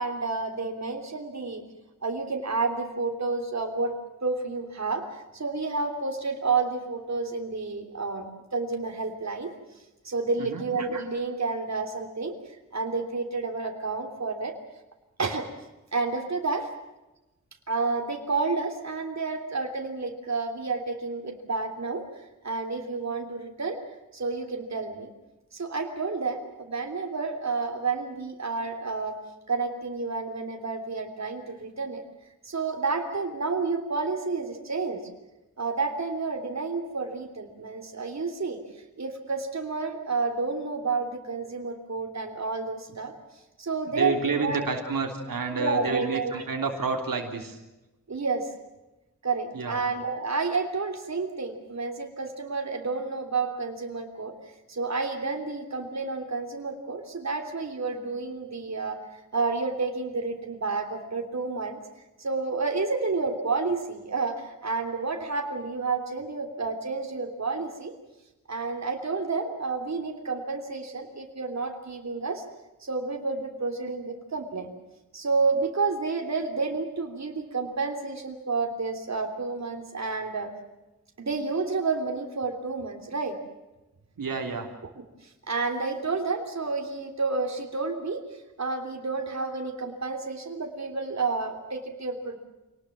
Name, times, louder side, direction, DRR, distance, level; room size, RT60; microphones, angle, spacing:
voice 1, 0.0-1.6 2.0-3.9 4.2-8.3 8.5-9.5 10.0-12.4 12.7-14.5 15.2-15.5 15.9-16.7 17.7-22.1 22.4-23.8 24.1-25.1 25.5-29.2 29.5-32.0 32.4-35.0 35.6-38.6 39.0-43.1 43.6-44.7 45.5-46.4 48.1-48.5 49.2-54.3 54.7-59.0 59.3-61.8 62.2-67.9 68.5-72.4 72.8-74.7 75.1-80.5 81.2-83.4 85.5-88.2 88.6-92.4, right 4 dB, 55° right, 3 dB, 3.3 m, -30 dB
voice 2, 43.9-47.6 49.5-49.8 84.2-84.7, right 4 dB, 85° right, 2 dB, 3.3 m, -29 dB
26.5 x 19.5 x 7.5 m, 0.99 s
wide cardioid pair, 90°, 33 cm